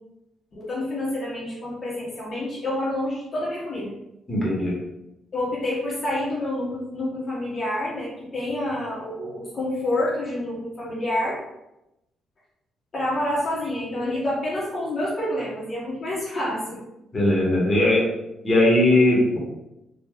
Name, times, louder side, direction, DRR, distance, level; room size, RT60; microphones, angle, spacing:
voice 1, 0.5-3.9 5.3-11.4 12.9-16.8, left 1 dB, 45° left, -7 dB, 1.3 m, -28 dB
voice 2, 4.3-4.7 17.1-18.0 18.4-19.4, left 1 dB, 30° left, -5 dB, 1.5 m, -19 dB
3.9 x 2.8 x 3.0 m, 0.89 s
cardioid pair, 90°, 0 cm